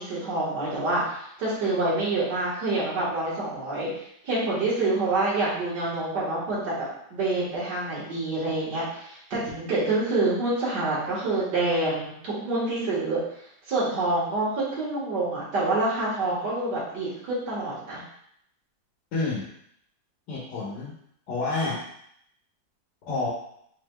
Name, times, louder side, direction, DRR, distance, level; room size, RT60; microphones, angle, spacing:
voice 1, 0.0-3.9 4.2-13.2 13.7-18.0, right 2 dB, 60° right, -7 dB, 2.0 m, -27 dB
voice 2, 19.1-19.5 20.3-20.9 21.3-21.8 23.1-23.3, left 3 dB, 65° left, -6 dB, 1.6 m, -28 dB
6.4 x 2.8 x 2.2 m, 0.70 s
omnidirectional pair, 2.1 m